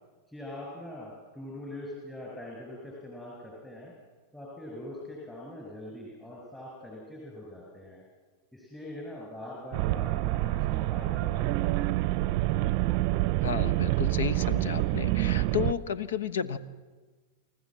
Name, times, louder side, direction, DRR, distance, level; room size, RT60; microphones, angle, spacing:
voice 1, 0.3-3.9 4.3-8.0 8.5-11.9, left 1 dB, 10° left, -4 dB, 6.3 m, -43 dB
sound 1, 9.7-15.7, right 17 dB, 50° right, 0.6 m, -27 dB
voice 2, 13.4-16.6, left 7 dB, 75° left, 14 dB, 1.1 m, -32 dB
29.0 x 14.0 x 7.5 m, 1.4 s
hypercardioid pair, 100°, 0 cm